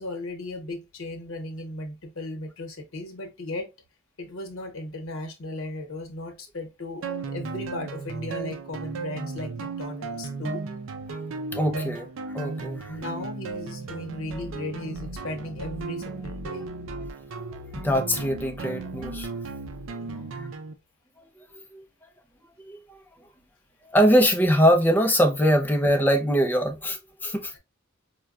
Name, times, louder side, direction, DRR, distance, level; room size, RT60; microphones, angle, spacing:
voice 1, 0.0-3.7 4.2-10.6 11.7-11.8 12.9-16.7 20.0-20.5, left 1 dB, 90° left, 0.9 m, -36 dB
sound 1, 7.0-20.7, right 3 dB, 75° right, 0.4 m, -35 dB
voice 2, 11.5-12.0 12.3-12.9 17.7-19.3 21.7-21.8 22.7-22.8 23.9-27.6, equal, 10° left, 0.5 m, -22 dB
4.4 x 2.2 x 2.3 m
head